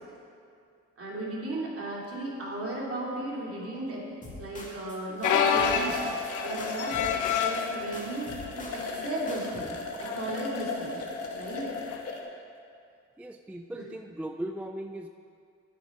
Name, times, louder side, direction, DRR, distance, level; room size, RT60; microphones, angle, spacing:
voice 1, 1.0-4.0 4.4-6.0 6.4-9.7 10.0-11.7 13.7-13.8, right 2 dB, 50° right, -3 dB, 2.7 m, -35 dB
sound 1, 4.2-5.0 5.2-6.3 6.6-7.7 7.9-9.0 9.3-9.6, left 2 dB, 25° left, 2.3 m, -44 dB
sound 2, 4.9-5.0 5.2-12.2, left 4 dB, 55° left, 1.3 m, -36 dB
sound 3, 5.2-7.7 8.4-8.7 9.0-9.1 10.1-10.3 11.9-12.0, left 7 dB, 80° left, 0.8 m, -27 dB
voice 2, 13.2-15.1, right 1 dB, 5° right, 6 dB, 0.3 m, -38 dB
9.2 x 8.5 x 5.1 m, 2.4 s
cardioid pair, 90°, 30 cm